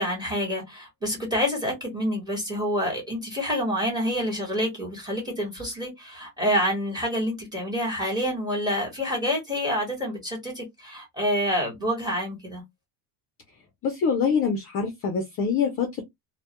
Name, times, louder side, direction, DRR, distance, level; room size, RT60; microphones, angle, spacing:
voice 1, 0.0-12.6, equal, 10° right, 0.9 m, -27 dB
voice 2, 13.8-16.0, left 6 dB, 30° left, 0.4 m, -25 dB
2.1 x 2.1 x 2.8 m
cardioid pair, 165°, 48 cm